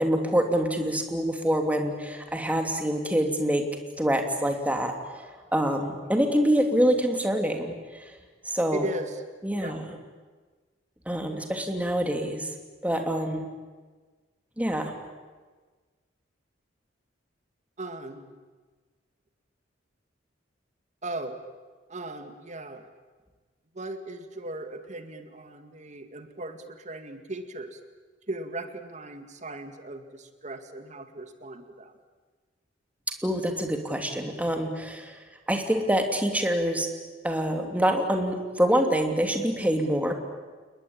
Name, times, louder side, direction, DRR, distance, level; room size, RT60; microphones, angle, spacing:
voice 1, 0.0-3.6 4.0-8.1 8.4-8.9 9.4-9.8 11.1-12.5 12.8-13.5 14.6-14.9 33.2-35.2 35.5-36.9 37.2-40.1, equal, 10° right, 4 dB, 2.9 m, -26 dB
voice 2, 8.7-9.2 9.5-9.8 17.8-18.3 21.0-21.4 21.9-22.9 23.7-27.8 28.3-31.9, right 2 dB, 40° right, 7 dB, 2.2 m, -37 dB
29.0 x 21.0 x 8.9 m, 1.4 s
head